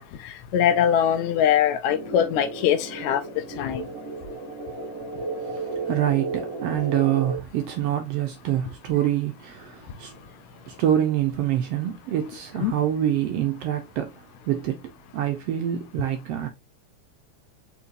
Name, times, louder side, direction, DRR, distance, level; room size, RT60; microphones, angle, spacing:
voice 1, 0.0-3.2 3.6-3.9 12.6-12.8, left 9 dB, 80° left, 1.8 m, -22 dB
sound 1, 1.9-7.4, right 3 dB, 20° right, 0.9 m, -33 dB
voice 2, 5.4-10.3 10.7-16.5, right 11 dB, 75° right, 1.5 m, -26 dB
4.6 x 4.3 x 2.5 m
omnidirectional pair, 3.3 m